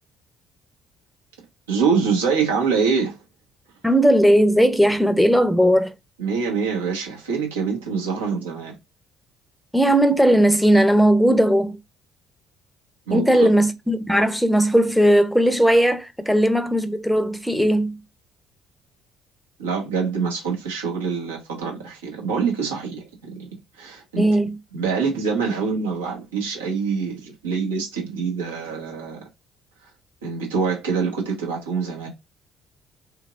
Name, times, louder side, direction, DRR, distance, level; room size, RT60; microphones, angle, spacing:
voice 1, 1.7-3.2 6.2-8.7 13.1-13.5 19.6-23.5 23.8-24.2 24.7-29.2 30.2-32.1, right 5 dB, 75° right, 1.0 m, -25 dB
voice 2, 3.8-5.9 9.7-11.8 13.1-18.0 24.2-24.6, equal, ahead, 0.6 m, -17 dB
3.4 x 3.2 x 2.4 m
figure-of-eight pair, 50°, 0 cm